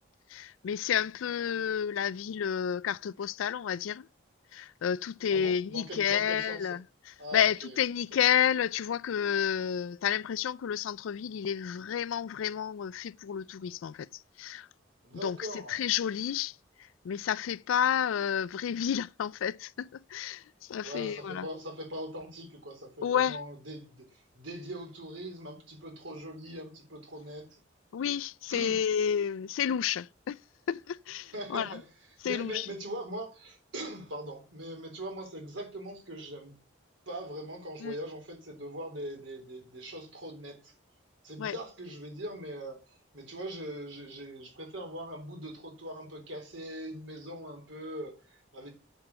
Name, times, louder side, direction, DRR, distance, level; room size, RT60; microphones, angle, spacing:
voice 1, 0.3-4.1 4.5-14.7 15.2-21.5 23.0-23.4 27.9-30.4 30.7-31.8 32.2-32.7 37.8-37.9 41.4-41.6, left 8 dB, 85° left, 0.3 m, -30 dB
voice 2, 5.3-6.8 7.2-7.8 15.0-15.8 20.8-27.6 28.5-28.8 31.3-31.8 32.2-36.5 37.1-40.7 41.2-48.7, right 1 dB, 75° right, 3.6 m, -41 dB
8.0 x 6.9 x 5.5 m
head